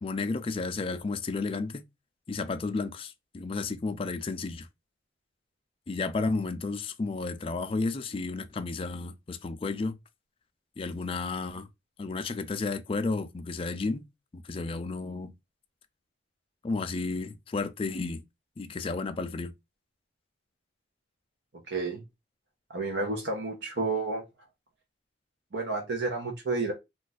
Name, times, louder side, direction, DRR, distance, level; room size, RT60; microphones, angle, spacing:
voice 1, 0.0-1.8 2.3-4.7 5.9-10.0 10.8-11.7 12.0-14.0 14.3-15.3 16.6-18.2 18.6-19.5, left 3 dB, 30° left, 0.4 m, -32 dB
voice 2, 21.7-22.0 22.7-24.2 25.5-26.7, right 3 dB, 65° right, 0.7 m, -30 dB
2.5 x 2.3 x 4.0 m
head